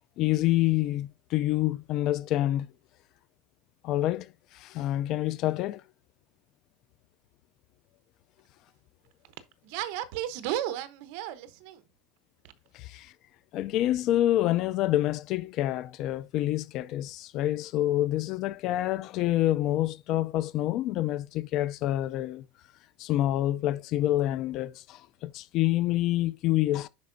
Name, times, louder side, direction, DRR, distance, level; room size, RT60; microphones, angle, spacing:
voice 1, 0.2-2.7 3.8-5.8 12.7-13.1 13.5-22.4 23.0-26.9, left 14 dB, 50° left, 0.4 m, -27 dB
voice 2, 9.6-11.8, right 12 dB, 65° right, 0.9 m, -34 dB
10.5 x 4.5 x 2.6 m
supercardioid pair, 145°, 0 cm